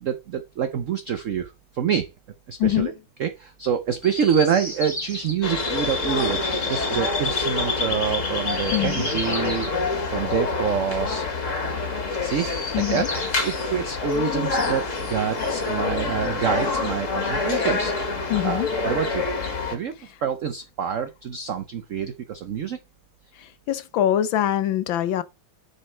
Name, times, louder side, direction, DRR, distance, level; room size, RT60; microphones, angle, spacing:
voice 1, 0.0-2.1 2.5-2.9 3.2-11.2 12.2-12.5 12.8-13.1 13.4-19.3 19.7-19.9 20.2-22.8, right 8 dB, 70° right, 0.7 m, -27 dB
voice 2, 2.6-2.9 8.7-9.1 12.7-13.1 18.3-18.7 23.4-25.2, left 12 dB, 75° left, 1.4 m, -24 dB
Chirp tweet, 4.0-5.4 8.4-9.8 12.2-13.6 15.0-16.1 17.2-18.1, left 2 dB, 15° left, 2.1 m, -36 dB
sound 1, 5.4-19.8, left 4 dB, 40° left, 1.9 m, -26 dB
9.9 x 4.2 x 4.3 m
omnidirectional pair, 2.2 m